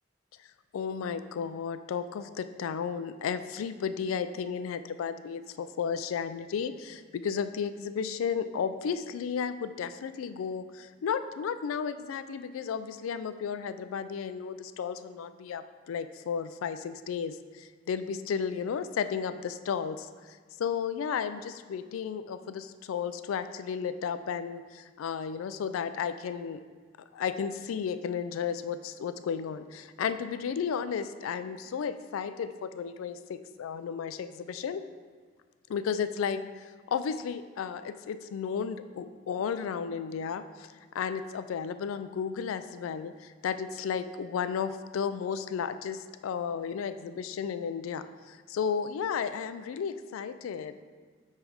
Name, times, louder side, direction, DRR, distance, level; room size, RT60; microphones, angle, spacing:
voice 1, 0.4-26.6 27.1-34.8 35.7-50.9, left 7 dB, 90° left, 11 dB, 0.3 m, -33 dB
6.1 x 3.3 x 5.0 m, 1.5 s
head